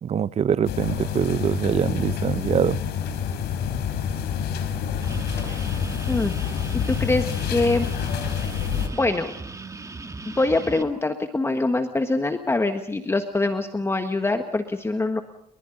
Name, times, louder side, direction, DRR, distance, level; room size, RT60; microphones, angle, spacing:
voice 1, 0.0-2.8, right 8 dB, 40° right, 0.7 m, -23 dB
sound 1, 0.6-8.9, left 8 dB, 80° left, 3.7 m, -27 dB
sound 2, 5.0-10.8, right 3 dB, 20° right, 1.7 m, -37 dB
voice 2, 6.1-7.9 8.4-8.5 8.9-9.3 10.2-15.2, left 2 dB, 15° left, 1.5 m, -24 dB
30.0 x 23.0 x 4.0 m
cardioid pair, 110°, 17 cm